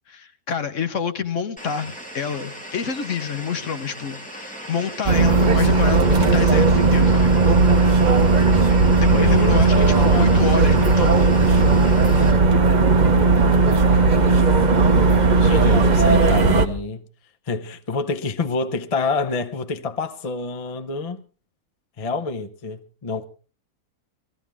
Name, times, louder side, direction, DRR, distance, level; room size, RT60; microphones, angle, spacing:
voice 1, 0.1-7.4 9.0-11.3, left 6 dB, 55° left, 1.2 m, -28 dB
sound 1, 1.6-12.3, equal, 5° left, 2.5 m, -38 dB
sound 2, 5.1-16.7, right 3 dB, 35° right, 0.9 m, -16 dB
voice 2, 9.1-10.4 15.4-17.0 17.5-21.2 22.0-23.2, left 3 dB, 30° left, 0.7 m, -27 dB
20.0 x 14.5 x 3.5 m
omnidirectional pair, 1.6 m